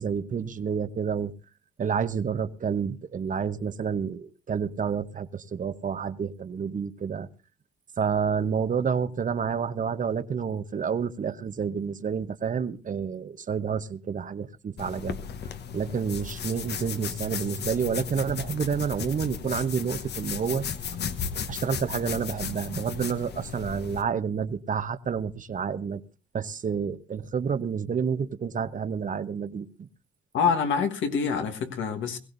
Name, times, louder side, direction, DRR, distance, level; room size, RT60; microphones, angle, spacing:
voice 1, 0.0-1.3 1.8-7.3 8.0-15.2 15.7-20.6 21.5-26.0 26.3-29.9, right 6 dB, 40° right, 0.9 m, -29 dB
sound 1, 14.8-24.0, left 7 dB, 55° left, 1.0 m, -35 dB
voice 2, 30.3-32.2, left 6 dB, 75° left, 1.5 m, -26 dB
21.0 x 16.0 x 2.6 m
cardioid pair, 90°, 20 cm